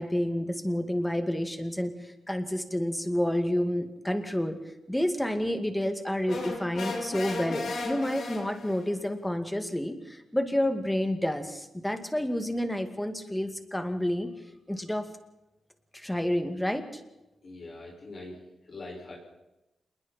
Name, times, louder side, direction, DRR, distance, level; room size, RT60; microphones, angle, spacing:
voice 1, 0.0-4.6 4.9-14.3 14.7-15.1 15.9-17.0, left 1 dB, 5° left, 7 dB, 2.2 m, -29 dB
sound 1, 6.3-8.9, left 3 dB, 70° left, 5.8 m, -35 dB
voice 2, 17.4-18.4 18.6-19.2, left 2 dB, 45° left, -2 dB, 6.0 m, -42 dB
27.5 x 21.0 x 4.5 m, 0.92 s
wide cardioid pair, 110°, 0 cm